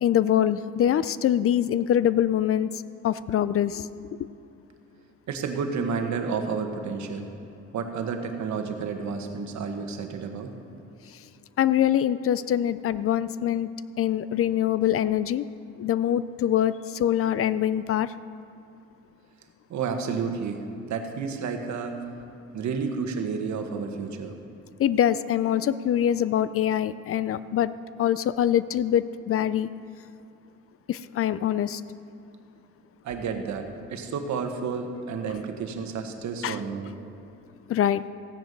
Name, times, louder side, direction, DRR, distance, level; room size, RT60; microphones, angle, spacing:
voice 1, 0.0-3.9 4.2-4.3 11.6-13.7 14.0-15.5 15.8-18.1 24.8-27.7 28.0-29.7 30.9-31.8 36.4-36.6 37.7-38.0, left 10 dB, 50° left, 16 dB, 0.4 m, -24 dB
voice 2, 5.3-7.3 7.7-10.5 19.7-22.0 22.5-24.3 33.0-36.9, right 5 dB, 70° right, 5 dB, 1.3 m, -31 dB
15.0 x 9.4 x 5.3 m, 2.7 s
cardioid pair, 90°, 30 cm